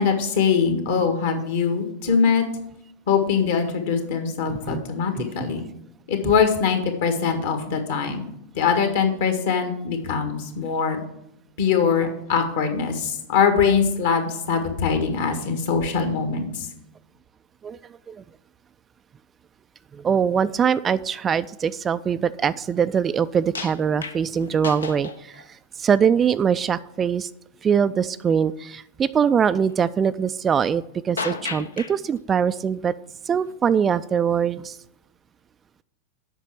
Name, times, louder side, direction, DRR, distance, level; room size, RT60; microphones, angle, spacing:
voice 1, 0.0-2.5 3.1-5.6 6.1-8.3 8.6-11.0 11.6-16.7, left 6 dB, 55° left, 6 dB, 1.8 m, -22 dB
voice 2, 4.5-4.8 5.2-5.3 17.6-17.8 18.1-18.2 19.9-25.4 25.8-27.3 27.6-32.9 33.3-34.8, right 7 dB, 20° right, 14 dB, 0.3 m, -22 dB
sound 1, 23.6-25.5 26.1-26.2 31.2-32.0 33.5-33.6, left 4 dB, 70° left, 0.7 m, -33 dB
8.1 x 5.8 x 7.5 m, 0.80 s
figure-of-eight pair, 90°, 0 cm